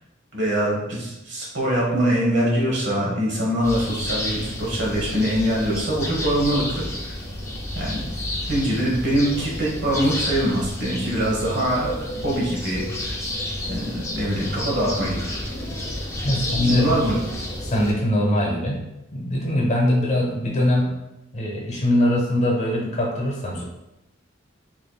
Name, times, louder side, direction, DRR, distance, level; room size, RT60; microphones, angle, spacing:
voice 1, 0.3-6.8 7.7-8.0 8.5-13.2 13.7-15.3 16.7-17.2, right 1 dB, 60° right, -3 dB, 1.3 m, -23 dB
sound 1, 3.6-17.9, left 1 dB, 15° left, 0.5 m, -30 dB
voice 2, 16.2-17.2 17.6-18.8 19.1-20.9 21.3-23.6, left 1 dB, 35° left, -1 dB, 0.9 m, -22 dB
5.0 x 3.0 x 2.3 m, 0.90 s
head